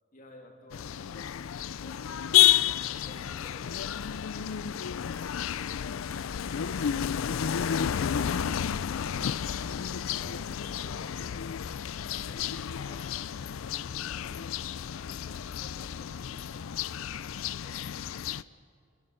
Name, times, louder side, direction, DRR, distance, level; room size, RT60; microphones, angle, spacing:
voice 1, 0.1-1.3 1.8-18.2, left 1 dB, 45° left, 2 dB, 2.8 m, -54 dB
sound 1, 0.7-18.4, left 10 dB, 90° left, 0.4 m, -30 dB
sound 2, 10.2-13.7, equal, 15° left, 4.4 m, -56 dB
29.0 x 11.0 x 8.8 m, 2.3 s
head